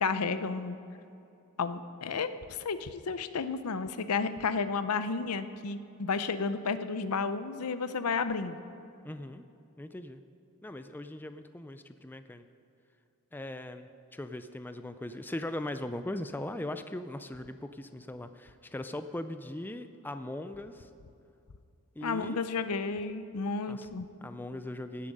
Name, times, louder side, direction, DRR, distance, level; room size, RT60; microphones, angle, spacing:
voice 1, 0.0-0.8 1.6-8.6 22.0-24.1, left 4 dB, 90° left, 12 dB, 0.6 m, -32 dB
voice 2, 9.0-9.5 9.8-10.2 10.6-12.5 13.3-20.9 22.0-22.4 23.7-23.9 24.2-25.1, left 1 dB, 10° left, 10 dB, 0.4 m, -39 dB
17.0 x 8.5 x 5.4 m, 2.7 s
head